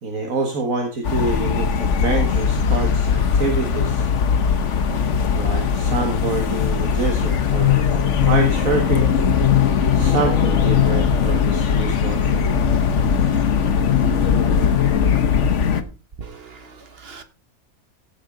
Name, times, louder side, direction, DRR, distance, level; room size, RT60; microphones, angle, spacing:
voice 1, 0.0-4.1 5.3-7.8 8.2-9.1 9.9-12.2, right 3 dB, 70° right, 2.0 m, -26 dB
sound 1, 1.0-15.8, left 7 dB, 60° left, 1.3 m, -19 dB
voice 2, 16.2-17.2, right 5 dB, 45° right, 1.4 m, -40 dB
15.5 x 6.5 x 3.8 m
omnidirectional pair, 1.5 m